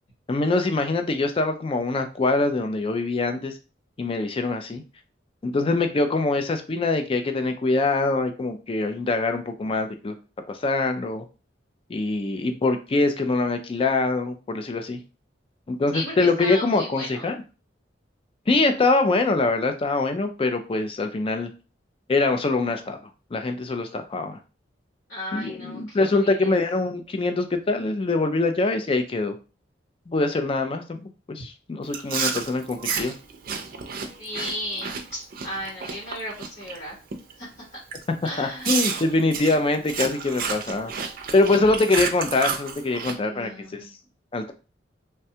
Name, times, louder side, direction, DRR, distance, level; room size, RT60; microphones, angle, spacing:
voice 1, 0.3-3.5 4.0-4.8 5.4-10.1 10.5-11.2 11.9-15.0 15.7-17.4 18.5-21.5 22.1-23.0 23.3-24.4 25.3-29.4 30.1-33.1 38.4-40.9 41.3-43.9 44.3-44.5, left 3 dB, 30° left, 7 dB, 0.4 m, -24 dB
voice 2, 15.9-17.3 25.1-26.6 34.2-36.9 37.4-37.5 38.2-39.0 43.2-43.9, left 1 dB, 65° left, -4 dB, 1.1 m, -35 dB
Chewing mastication, 31.9-36.8 37.1-37.4 37.9-38.0 38.6-43.1, right 6 dB, 50° right, 0.5 m, -31 dB
3.3 x 2.2 x 2.7 m, 0.33 s
head